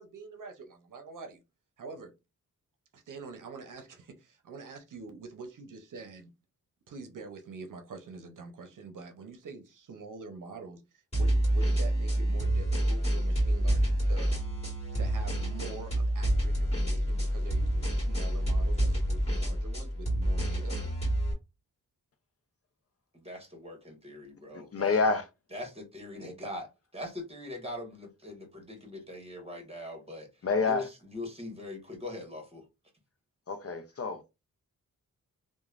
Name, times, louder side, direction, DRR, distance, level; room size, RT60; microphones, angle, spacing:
voice 1, 0.0-1.4 1.8-2.1 2.9-6.3 6.9-14.4 14.9-20.8, right 4 dB, 65° right, 0.7 m, -45 dB
sound 1, 11.1-21.3, right 1 dB, 20° left, 1.8 m, -28 dB
voice 2, 23.1-25.1 25.5-30.3 30.6-32.6, left 2 dB, 15° right, 1.3 m, -42 dB
voice 3, 24.7-25.3 30.4-30.9 33.5-34.2, left 4 dB, 45° left, 0.6 m, -27 dB
2.9 x 2.3 x 2.4 m
cardioid pair, 60°, 34 cm